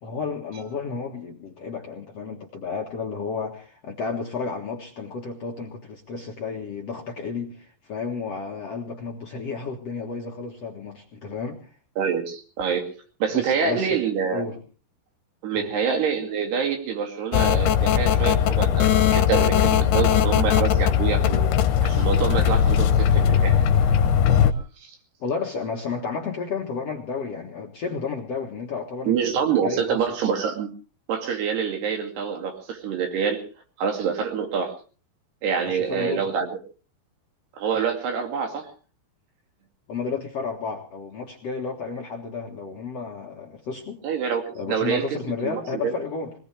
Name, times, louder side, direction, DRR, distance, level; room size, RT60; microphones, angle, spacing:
voice 1, 0.0-11.7 13.3-14.0 14.3-14.6 15.5-15.7 25.2-30.0 35.6-36.3 39.9-44.0 44.5-46.3, left 5 dB, 55° left, 0 dB, 2.0 m, -32 dB
voice 2, 12.0-12.9 13.2-14.4 15.4-21.4 21.8-23.6 29.1-30.7 31.1-33.4 33.8-34.7 35.4-36.5 37.6-38.7 44.0-44.4 44.7-45.1 45.4-46.0, right 6 dB, 70° right, 3 dB, 4.4 m, -26 dB
sound 1, 17.3-24.5, left 8 dB, 75° left, 2.9 m, -19 dB
23.0 x 19.0 x 3.3 m, 0.38 s
omnidirectional pair, 4.9 m